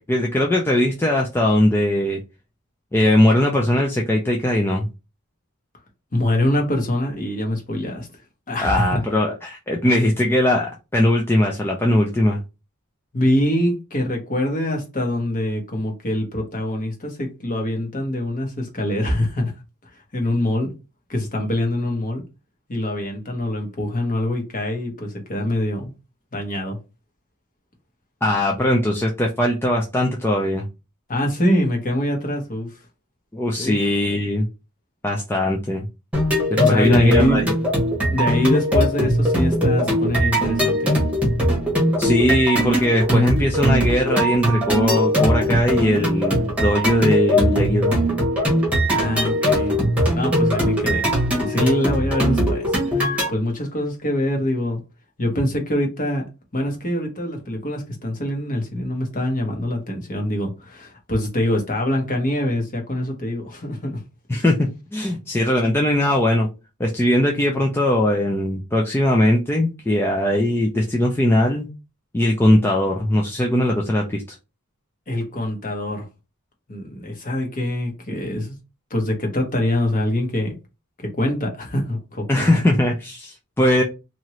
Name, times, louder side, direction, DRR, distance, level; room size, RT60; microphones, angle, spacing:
voice 1, 0.1-2.2 2.9-4.9 8.6-12.4 28.2-30.7 33.3-34.5 35.0-35.9 36.7-37.4 42.0-48.0 64.3-64.6 64.9-66.5 66.8-71.7 72.1-74.2 82.3-83.8, left 1 dB, 10° left, 0.4 m, -20 dB
voice 2, 6.1-8.1 8.5-9.0 13.1-19.5 20.1-20.7 21.1-22.2 22.7-25.9 26.3-26.8 31.1-32.8 33.6-33.8 36.6-37.5 38.1-41.0 48.9-49.8 50.1-51.1 51.4-54.8 55.2-56.2 56.5-64.0 75.1-76.1 76.7-78.6 78.9-80.5 81.0-82.6, left 1 dB, 40° left, 1.0 m, -24 dB
sound 1, 36.1-53.3, equal, 5° right, 1.0 m, -20 dB
2.9 x 2.6 x 3.0 m
head